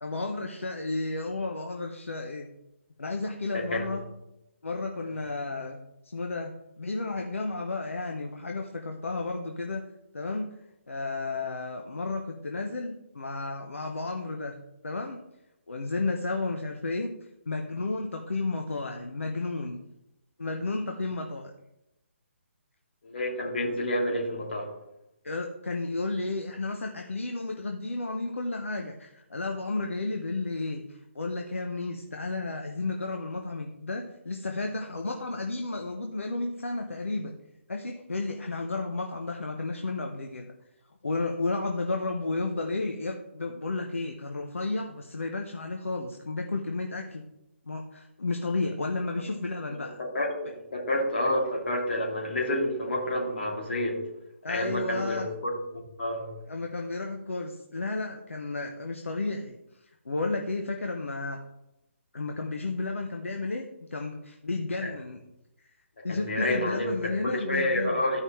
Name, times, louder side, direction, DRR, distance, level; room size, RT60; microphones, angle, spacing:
voice 1, 0.0-2.5 3.0-4.0 4.6-5.8 6.0-9.9 10.1-10.5 10.9-14.5 14.8-15.2 15.7-17.1 17.5-19.8 20.4-21.5 25.2-37.3 37.7-40.5 41.0-47.2 47.7-50.0 54.4-55.3 56.5-59.6 60.0-61.4 62.1-65.2 65.6-65.7 66.0-68.0, left 3 dB, 70° left, 2 dB, 1.0 m, -32 dB
voice 2, 3.5-3.9 5.0-5.1 23.0-24.7 49.7-54.0 54.5-55.5 56.0-56.3 64.8-64.9 66.0-68.2, left 1 dB, 50° left, -2 dB, 2.7 m, -29 dB
14.0 x 5.5 x 3.2 m, 0.88 s
figure-of-eight pair, 135°, 7 cm